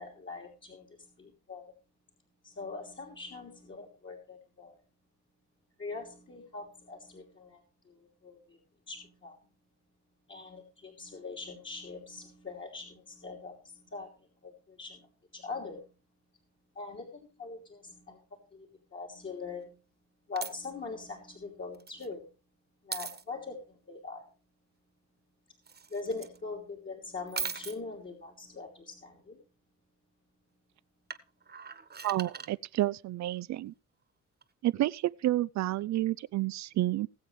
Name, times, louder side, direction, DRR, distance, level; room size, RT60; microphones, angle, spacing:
voice 1, 0.0-1.7 2.4-4.8 5.8-8.6 8.9-9.4 10.3-15.9 16.7-19.8 20.3-22.3 22.8-24.3 25.9-29.4, left 4 dB, 40° left, 3.0 m, -42 dB
sound 1, 20.4-20.7 21.7-22.1 22.9-23.2 25.6-26.4 27.3-27.8 31.1-32.5 34.4-34.5, right 5 dB, 35° right, 1.4 m, -39 dB
voice 2, 32.0-33.7 34.6-37.1, right 15 dB, 65° right, 0.5 m, -30 dB
20.5 x 7.7 x 3.3 m
cardioid pair, 90°, 30 cm